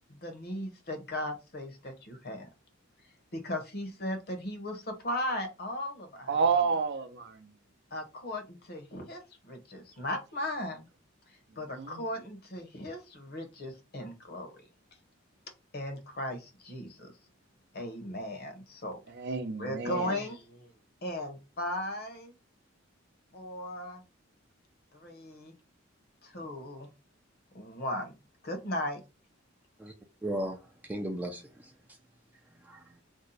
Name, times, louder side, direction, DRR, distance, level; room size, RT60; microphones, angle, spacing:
voice 1, 0.1-2.5 3.3-6.3 7.9-10.9 11.6-14.5 15.7-17.1 17.7-19.0 19.6-20.7 21.0-22.4 23.3-24.0 24.9-25.5 26.2-26.9 27.5-28.2 28.4-29.0, left 1 dB, 50° left, 0.9 m, -37 dB
voice 2, 6.3-7.5 11.7-12.0 19.1-20.2, right 5 dB, 55° right, 0.5 m, -30 dB
voice 3, 30.2-31.7 32.6-33.0, right 1 dB, 10° right, 0.4 m, -36 dB
2.7 x 2.1 x 3.9 m
head